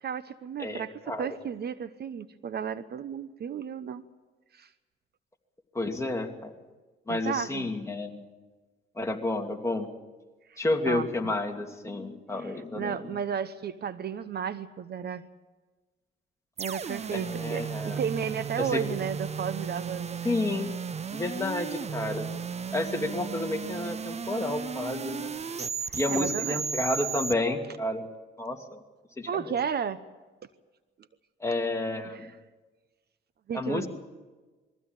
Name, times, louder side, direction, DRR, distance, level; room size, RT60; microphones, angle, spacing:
voice 1, 0.0-0.9 1.2-4.0 4.6-4.7 7.1-7.7 10.5-10.6 10.9-11.3 12.4-15.3 16.6-20.2 25.8-26.6 29.3-30.0 32.0-32.3 33.5-33.9, right 7 dB, 55° right, 14 dB, 0.9 m, -33 dB
voice 2, 0.6-1.3 5.7-6.5 7.1-8.2 9.0-9.9 10.6-13.2 17.1-18.0 18.6-18.8 20.2-20.7 21.1-22.3 22.7-25.3 25.9-28.1 28.4-28.8 29.2-29.5 31.4-32.3 33.5-33.9, left 2 dB, 15° left, 2 dB, 2.6 m, -30 dB
sound 1, 16.6-27.3, right 6 dB, 35° right, 0.7 m, -35 dB
22.0 x 15.5 x 8.9 m, 1.3 s
cardioid pair, 90°, 20 cm